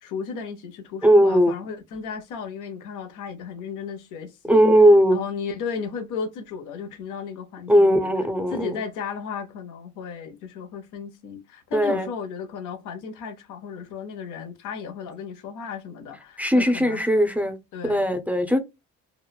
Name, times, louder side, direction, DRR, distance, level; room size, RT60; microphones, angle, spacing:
voice 1, 0.0-4.6 5.1-8.1 8.5-17.0 17.7-18.1, left 6 dB, 85° left, 0.7 m, -34 dB
voice 2, 1.0-1.6 4.5-5.2 7.7-8.8 11.7-12.1 16.4-17.6 17.8-18.6, equal, 5° right, 0.5 m, -18 dB
3.0 x 2.0 x 2.2 m
cardioid pair, 90°, 30 cm